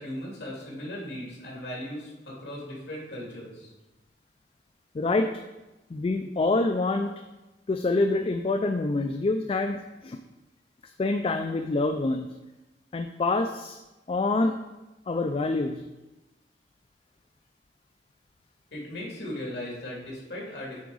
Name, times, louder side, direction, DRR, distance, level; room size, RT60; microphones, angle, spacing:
voice 1, 0.0-3.7 18.7-20.8, left 1 dB, 70° left, -4 dB, 2.7 m, -37 dB
voice 2, 4.9-5.3 5.9-7.1 7.7-10.2 10.8-12.3 12.9-13.8 14.1-14.6 15.1-15.8, left 2 dB, 35° left, 7 dB, 0.3 m, -26 dB
9.5 x 4.7 x 3.9 m, 1.1 s
head